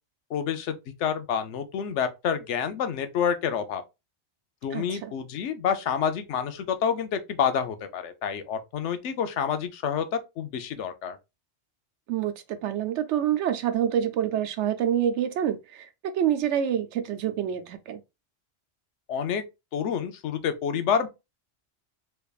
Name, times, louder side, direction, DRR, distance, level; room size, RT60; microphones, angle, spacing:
voice 1, 0.3-3.8 4.6-11.2 19.1-19.4 19.7-21.1, left 7 dB, 85° left, 1.0 m, -28 dB
voice 2, 4.7-5.1 12.1-18.0, right 9 dB, 90° right, 0.9 m, -27 dB
3.4 x 3.3 x 2.3 m
omnidirectional pair, 1.2 m